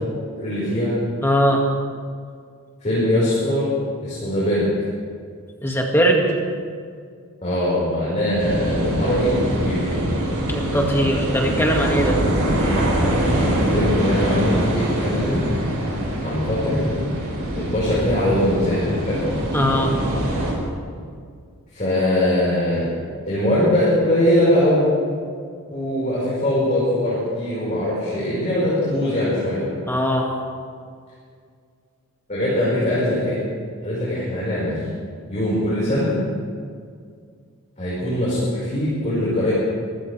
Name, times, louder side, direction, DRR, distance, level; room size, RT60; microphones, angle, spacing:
voice 1, 0.3-0.9 2.8-3.7 4.0-4.7 7.4-9.9 13.4-15.4 16.2-16.8 17.6-19.2 21.7-22.9 23.3-24.8 25.7-29.6 32.3-33.4 33.8-34.7 35.3-36.1 37.8-39.5, left 1 dB, 35° left, -9 dB, 5.0 m, -21 dB
voice 2, 1.2-1.6 5.6-6.4 10.5-12.2 19.5-20.0 29.9-30.3, equal, 10° left, 0 dB, 2.0 m, -20 dB
sound 1, 8.4-20.5, right 1 dB, 65° right, 5.3 m, -23 dB
25.0 x 15.5 x 3.4 m, 2.1 s
head